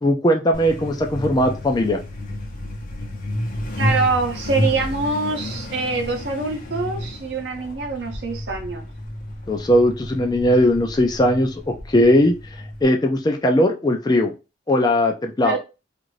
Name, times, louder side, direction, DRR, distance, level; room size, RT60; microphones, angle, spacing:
voice 1, 0.0-2.0 9.5-12.3 12.8-14.3 14.7-15.6, left 1 dB, 25° left, 4 dB, 0.4 m, -19 dB
Truck, 0.5-12.8, left 1 dB, 50° left, 0.7 m, -31 dB
voice 2, 3.8-8.8 15.4-15.6, right 3 dB, 70° right, 2 dB, 0.7 m, -24 dB
2.6 x 2.5 x 3.1 m, 0.29 s
head